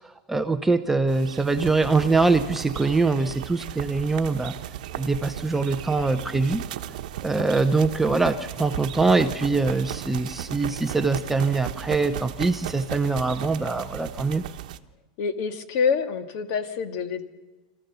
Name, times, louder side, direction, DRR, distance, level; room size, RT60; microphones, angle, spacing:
voice 1, 0.3-4.5 5.0-6.6 7.2-14.4, right 3 dB, 5° right, 8 dB, 0.6 m, -23 dB
sound 1, 1.1-14.8, right 12 dB, 75° right, 1.1 m, -35 dB
voice 2, 15.2-17.2, left 6 dB, 45° left, 9 dB, 1.7 m, -26 dB
26.0 x 14.5 x 6.9 m, 1.2 s
supercardioid pair, 165°, 4 cm